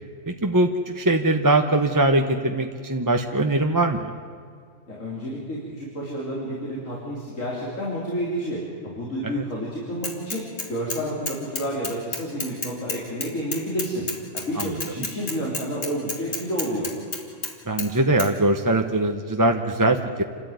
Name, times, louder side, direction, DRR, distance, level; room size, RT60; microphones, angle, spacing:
voice 1, 0.3-4.1 9.2-9.4 14.6-14.7 17.7-20.2, right 2 dB, 20° right, 4 dB, 0.9 m, -22 dB
voice 2, 4.9-10.4 10.7-14.1 14.3-16.9, equal, 85° left, -5 dB, 4.1 m, -30 dB
Bicycle / Mechanisms, 10.0-11.0 11.3-17.5 17.8-17.9 18.2-18.3, left 3 dB, 50° left, 2.5 m, -30 dB
28.5 x 13.0 x 9.4 m, 2.2 s
omnidirectional pair, 1.3 m